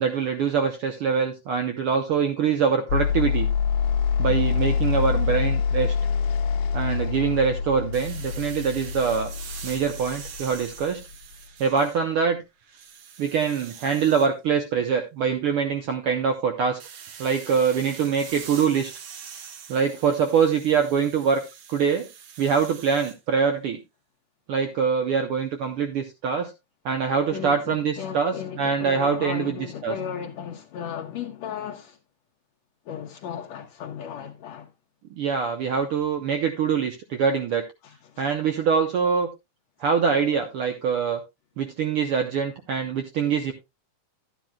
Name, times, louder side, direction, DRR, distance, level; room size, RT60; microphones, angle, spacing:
voice 1, 0.0-3.5 4.2-5.9 6.7-9.3 9.6-11.0 11.6-12.4 13.2-16.8 17.2-18.9 19.7-21.4 21.7-22.1 22.4-23.8 24.5-26.5 26.8-29.5 29.8-29.9 35.2-37.6 38.2-39.3 39.8-41.2 41.6-43.5, right 6 dB, 80° right, 1.2 m, -24 dB
sound 1, 2.9-11.0, left 6 dB, 90° left, 2.2 m, -25 dB
sound 2, 7.9-12.2 12.6-14.3 16.8-23.2, right 7 dB, 60° right, 1.6 m, -43 dB
voice 2, 27.3-32.0 32.9-34.7 37.8-38.3, left 8 dB, 75° left, 1.8 m, -35 dB
12.0 x 10.0 x 2.2 m
omnidirectional pair, 3.5 m